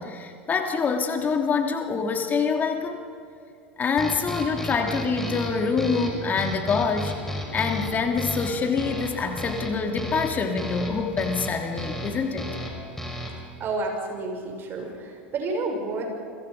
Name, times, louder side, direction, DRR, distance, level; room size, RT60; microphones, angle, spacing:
voice 1, 0.0-3.0 3.8-7.1 7.5-12.5, left 5 dB, 30° left, 4 dB, 2.9 m, -25 dB
sound 1, 4.0-13.5, equal, 5° left, 5.5 m, -34 dB
sound 2, 7.7-12.8, left 3 dB, 75° left, 5.5 m, -45 dB
voice 2, 13.6-16.0, right 3 dB, 40° right, 2 dB, 6.2 m, -30 dB
29.5 x 24.0 x 5.4 m, 2.4 s
figure-of-eight pair, 80°, 6 cm